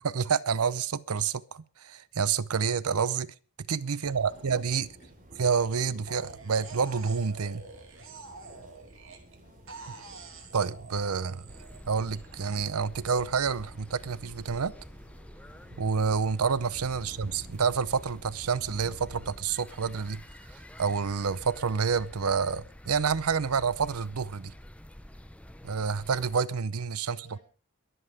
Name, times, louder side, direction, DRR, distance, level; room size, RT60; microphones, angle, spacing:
voice 1, 0.0-3.3 3.7-4.9 5.4-7.6 10.5-11.5 11.9-14.7 15.8-20.2 20.8-24.5 25.6-27.3, right 6 dB, 90° right, 0.7 m, -28 dB
voice 2, 3.9-5.1 9.4-10.0 17.0-17.3 27.0-27.4, left 1 dB, 30° left, 5.5 m, -62 dB
sound 1, 4.0-19.3, equal, 40° right, 3.1 m, -51 dB
sound 2, 6.1-9.4 9.7-12.6, right 4 dB, 60° right, 2.9 m, -47 dB
sound 3, 11.5-26.4, equal, 5° left, 0.7 m, -49 dB
22.5 x 7.8 x 4.9 m
head